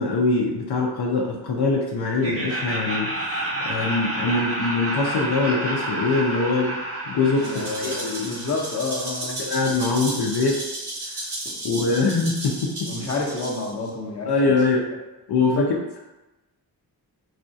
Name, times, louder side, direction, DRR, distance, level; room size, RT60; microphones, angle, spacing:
voice 1, 0.0-6.8 7.1-8.3 9.4-10.6 11.1-11.2 11.6-12.9 14.3-14.8 15.3-16.0, left 3 dB, 70° left, -2 dB, 0.6 m, -23 dB
Laughter, 2.2-9.1, right 1 dB, 35° right, 0.7 m, -30 dB
voice 2, 7.4-9.4 11.4-11.6 12.9-14.6 15.4-15.7, left 3 dB, 40° left, -2 dB, 0.8 m, -29 dB
Rattle (instrument), 7.4-13.9, right 1 dB, 75° right, 1.2 m, -34 dB
4.1 x 2.3 x 2.6 m, 1.0 s
wide cardioid pair, 90°, 41 cm